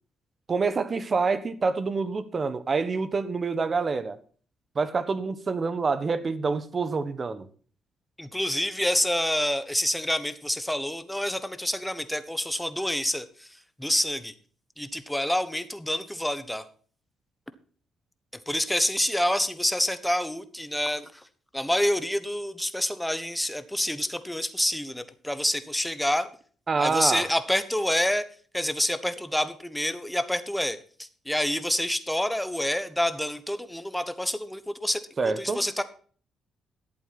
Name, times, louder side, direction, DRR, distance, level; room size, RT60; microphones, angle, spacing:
voice 1, 0.5-4.2 4.7-7.5 26.7-27.3 35.2-35.6, right 4 dB, 35° right, 1.3 m, -27 dB
voice 2, 8.2-13.5 13.8-14.3 14.8-16.6 18.5-21.0 21.5-26.3 26.8-28.2 28.5-30.8 31.3-35.8, left 1 dB, 5° left, 1.3 m, -27 dB
11.5 x 8.4 x 6.0 m
cardioid pair, 90°, 0 cm